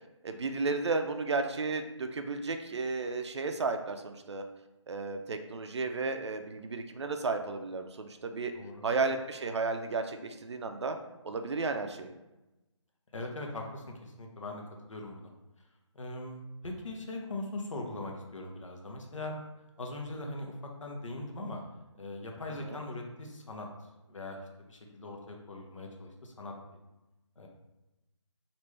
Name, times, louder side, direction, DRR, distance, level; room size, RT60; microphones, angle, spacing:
voice 1, 0.2-4.4 4.9-8.5 8.8-11.0 11.2-12.1 22.6-22.8, right 3 dB, 65° right, 6 dB, 0.4 m, -33 dB
voice 2, 13.1-14.6 14.9-15.3 15.9-19.3 19.8-20.5 20.8-21.6 22.0-23.7 24.1-24.4 24.7-26.5 27.4-27.5, left 2 dB, 80° left, 1 dB, 0.8 m, -40 dB
3.2 x 2.5 x 3.1 m, 1.0 s
figure-of-eight pair, 165°, 16 cm